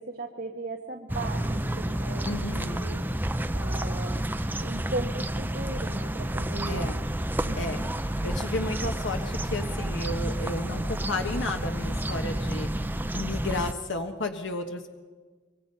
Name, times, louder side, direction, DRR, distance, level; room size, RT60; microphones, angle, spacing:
voice 1, 0.0-3.0 3.5-4.3 4.6-6.9 7.4-7.9, right 2 dB, 55° right, 2 dB, 1.6 m, -37 dB
sound 1, 1.1-13.7, right 1 dB, 10° right, 0.6 m, -30 dB
voice 2, 2.2-2.9 6.6-7.0 7.5-7.8 8.2-14.9, left 2 dB, 75° left, 4 dB, 1.4 m, -33 dB
25.5 x 23.5 x 5.5 m, 1.4 s
head